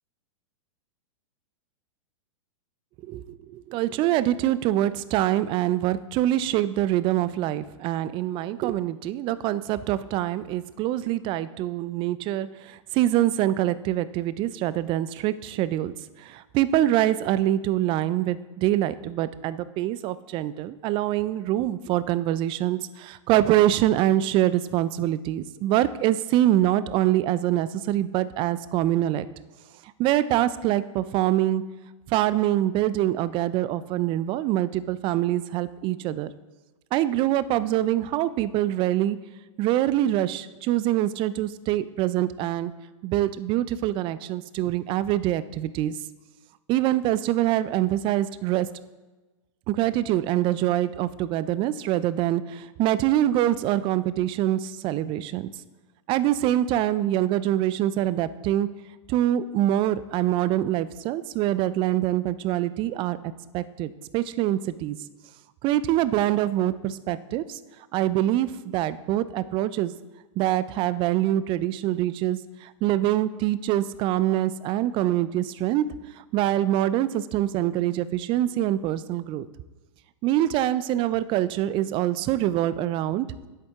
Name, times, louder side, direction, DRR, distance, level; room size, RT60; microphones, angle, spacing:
voice 1, 3.0-29.2 30.0-31.6 32.1-36.3 36.9-39.2 39.6-42.7 43.0-45.9 46.7-48.7 49.7-55.5 56.1-58.7 59.1-63.2 63.5-65.0 65.6-67.6 67.9-69.9 70.4-75.9 76.2-79.5 80.2-83.3, right 13 dB, 30° right, 16 dB, 0.4 m, -24 dB
9.6 x 8.2 x 3.6 m, 1.2 s
hypercardioid pair, 120°, 17 cm